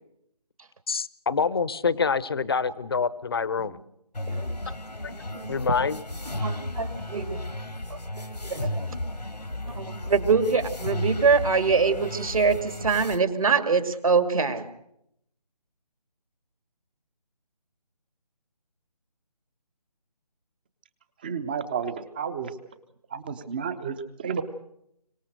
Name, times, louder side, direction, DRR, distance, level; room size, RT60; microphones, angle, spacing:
voice 1, 0.9-3.8 5.0-6.0, left 5 dB, 35° left, 18 dB, 0.8 m, -26 dB
sound 1, 4.1-13.2, left 1 dB, 90° left, 1.8 m, -34 dB
voice 2, 6.4-7.4 7.9-8.8 9.7-14.6, right 5 dB, 55° right, 9 dB, 2.5 m, -24 dB
voice 3, 21.2-22.5 23.1-24.4, right 6 dB, 15° right, 14 dB, 0.7 m, -31 dB
24.5 x 19.0 x 6.5 m, 0.76 s
figure-of-eight pair, 155°, 21 cm